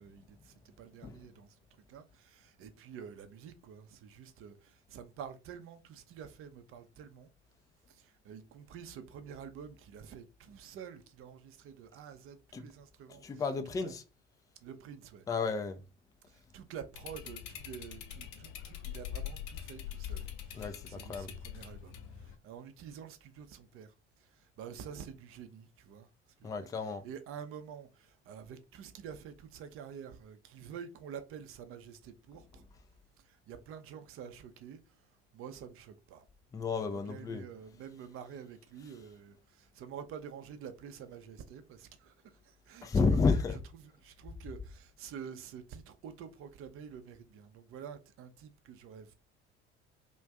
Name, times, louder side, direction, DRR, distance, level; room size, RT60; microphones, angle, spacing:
voice 1, 0.0-1.6 1.9-7.3 7.9-13.4 13.8-13.9 14.6-15.3 16.3-23.9 24.2-26.1 26.4-26.7 27.0-32.6 33.2-35.0 35.3-36.3 36.8-43.2 43.5-49.1, right 7 dB, 40° right, 0.6 m, -48 dB
voice 2, 13.2-14.0 15.3-15.8 20.5-21.3 26.4-27.0 36.5-37.5 42.8-43.6, left 4 dB, 10° left, 0.3 m, -31 dB
sound 1, 16.9-22.3, left 9 dB, 55° left, 0.6 m, -43 dB
2.5 x 2.2 x 3.4 m
figure-of-eight pair, 65°, 34 cm